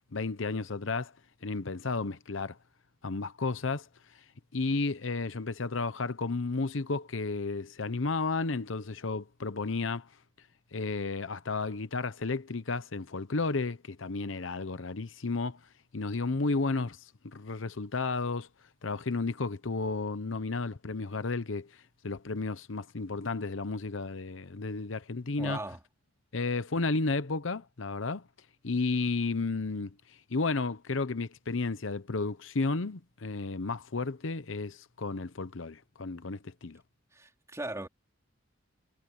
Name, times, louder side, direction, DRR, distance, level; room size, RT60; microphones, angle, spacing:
voice 1, 0.1-1.1 1.4-2.6 3.0-3.9 4.5-10.1 10.7-15.6 15.9-17.0 17.2-18.5 18.8-21.7 22.0-25.6 26.3-28.2 28.6-29.9 30.3-36.8, left 3 dB, 75° left, 0.9 m, -32 dB
voice 2, 25.4-25.8 37.1-37.9, right 1 dB, 15° right, 3.1 m, -38 dB
head